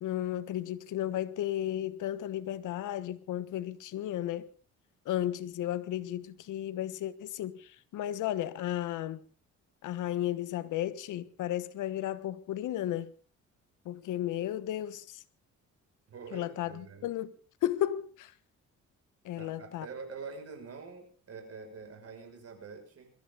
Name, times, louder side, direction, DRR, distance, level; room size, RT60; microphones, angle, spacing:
voice 1, 0.0-4.5 5.0-9.2 9.8-13.1 13.8-15.2 16.3-17.3 17.6-18.3 19.2-19.9, left 12 dB, 85° left, 1.3 m, -34 dB
voice 2, 16.1-17.1 19.4-23.1, right 4 dB, 50° right, 6.3 m, -45 dB
22.0 x 14.0 x 4.0 m
cardioid pair, 90°, 30 cm